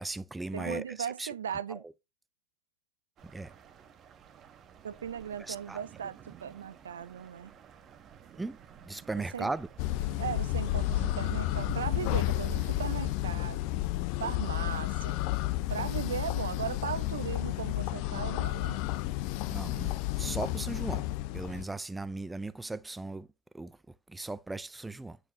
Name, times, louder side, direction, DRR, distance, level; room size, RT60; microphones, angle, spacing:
voice 1, 0.0-1.9 3.2-3.5 5.4-5.8 8.4-8.6 8.8-9.7 19.5-21.1 21.3-23.3 23.5-25.2, right 2 dB, 10° right, 0.4 m, -38 dB
voice 2, 0.5-1.8 4.8-7.5 9.3-9.5 10.2-13.6 14.2-15.2 15.7-18.9, right 8 dB, 80° right, 0.4 m, -37 dB
sound 1, 3.2-13.1, right 7 dB, 35° right, 0.9 m, -49 dB
sound 2, 9.8-21.6, left 16 dB, 50° left, 0.5 m, -31 dB
8.8 x 4.7 x 2.7 m
hypercardioid pair, 95°, 0 cm